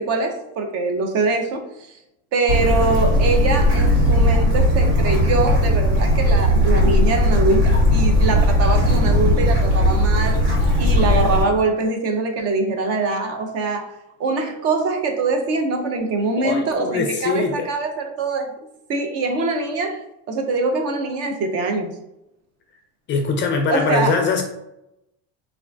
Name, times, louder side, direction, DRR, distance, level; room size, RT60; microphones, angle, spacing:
voice 1, 0.0-1.6 2.3-18.5 18.9-21.9 23.7-24.1, right 3 dB, 45° right, 4 dB, 0.5 m, -23 dB
Bird / Stream, 2.5-11.4, equal, 85° right, 1.5 m, -17 dB
voice 2, 16.4-17.7 23.1-24.4, left 4 dB, 35° left, 4 dB, 0.4 m, -22 dB
3.4 x 2.4 x 2.3 m, 0.85 s
cardioid pair, 130°, 36 cm